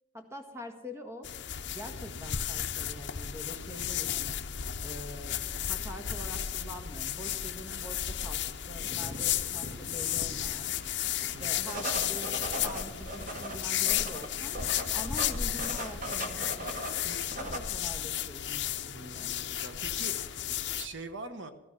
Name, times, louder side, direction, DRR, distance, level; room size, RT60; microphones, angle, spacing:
voice 1, 0.1-1.3 1.7-4.4 4.8-10.8 11.2-14.6 14.9-16.7 17.0-19.3, equal, 15° right, 5 dB, 1.5 m, -45 dB
sound 1, 1.2-20.9, left 10 dB, 60° left, 0.8 m, -33 dB
sound 2, 8.8-17.6, right 1 dB, 40° right, 1.9 m, -40 dB
voice 2, 18.8-21.5, right 3 dB, 65° right, 9 dB, 1.0 m, -44 dB
15.0 x 15.0 x 6.0 m, 1.1 s
head